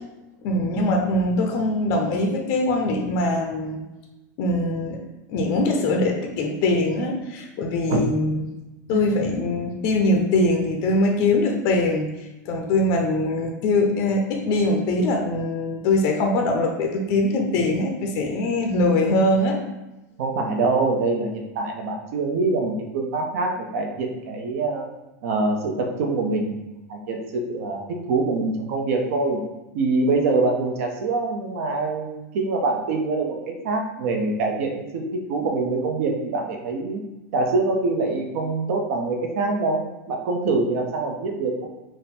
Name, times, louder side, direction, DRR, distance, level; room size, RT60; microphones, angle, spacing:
voice 1, 0.4-3.8 4.4-5.0 5.3-8.4 8.9-12.1 12.5-19.6, left 2 dB, 40° left, 2 dB, 0.5 m, -22 dB
voice 2, 20.2-24.9 25.2-26.6 26.9-29.4 29.7-37.0 37.3-41.7, right 3 dB, 60° right, 2 dB, 0.7 m, -24 dB
3.6 x 2.1 x 4.3 m, 1.0 s
supercardioid pair, 160°, 9 cm